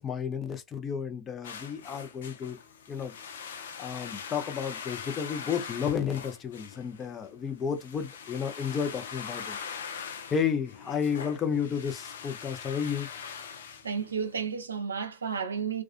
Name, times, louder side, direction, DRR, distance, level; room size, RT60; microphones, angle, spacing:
voice 1, 0.0-2.6 2.9-3.1 3.8-9.6 10.3-13.1, left 7 dB, 30° left, 0.7 m, -32 dB
sound 1, 1.4-14.5, left 7 dB, 75° left, 0.6 m, -42 dB
voice 2, 13.8-15.8, right 6 dB, 85° right, 0.6 m, -32 dB
2.4 x 2.3 x 2.5 m
hypercardioid pair, 95°, 0 cm